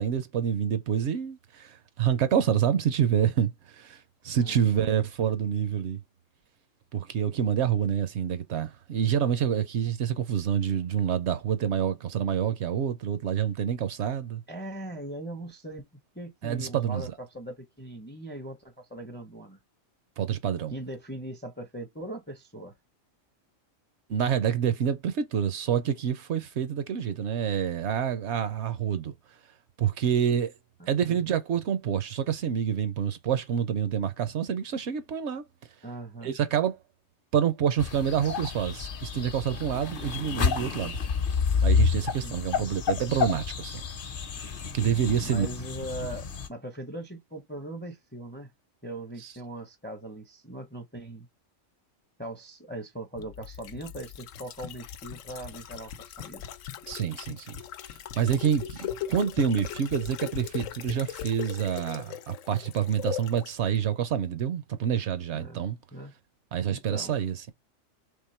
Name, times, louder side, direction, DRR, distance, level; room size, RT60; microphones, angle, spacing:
voice 1, 0.0-6.0 6.9-14.4 16.4-17.1 20.2-20.7 24.1-29.1 29.8-30.5 30.9-35.4 36.2-36.8 37.3-41.0 41.6-43.8 44.7-45.5 49.2-49.3 56.9-57.6 58.2-65.8 66.5-67.5, right 8 dB, 65° right, 0.8 m, -27 dB
voice 2, 4.4-4.9 14.5-15.8 16.1-19.6 20.7-22.7 30.8-31.2 35.8-36.4 42.2-42.7 45.2-48.5 48.8-51.3 52.2-55.9 56.2-56.4 65.3-65.6 65.9-66.1 66.7-67.2, right 1 dB, 15° left, 0.4 m, -40 dB
sound 1, 37.8-46.5, left 6 dB, 50° left, 0.8 m, -29 dB
sound 2, 53.2-63.5 63.8-63.9, left 10 dB, 80° left, 1.0 m, -39 dB
3.6 x 3.3 x 4.2 m
omnidirectional pair, 1.3 m